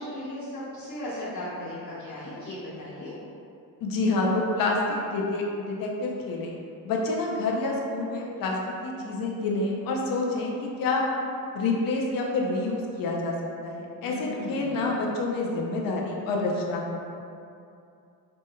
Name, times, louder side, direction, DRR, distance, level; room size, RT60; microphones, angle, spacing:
voice 1, 0.0-3.1 14.0-14.8, left 1 dB, 50° left, -13 dB, 1.2 m, -36 dB
voice 2, 3.8-6.6 6.8-11.0 11.5-13.3 13.6-17.0, left 2 dB, 70° left, -1 dB, 0.6 m, -28 dB
3.9 x 3.6 x 2.2 m, 2.5 s
cardioid pair, 135°, 36 cm